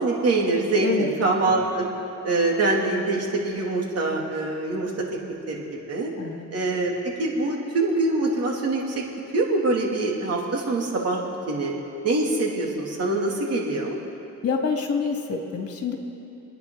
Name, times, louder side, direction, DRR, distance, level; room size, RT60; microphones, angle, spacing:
voice 1, 0.0-1.9 2.2-4.9 5.5-6.1 6.5-6.9 7.2-9.0 9.3-11.7 12.0-14.0, right 2 dB, 55° right, -2 dB, 3.0 m, -24 dB
voice 2, 0.8-1.1 6.2-6.5 14.4-16.0, left 5 dB, 50° left, 2 dB, 2.3 m, -27 dB
27.5 x 10.0 x 4.1 m, 2.8 s
cardioid pair, 90°, 30 cm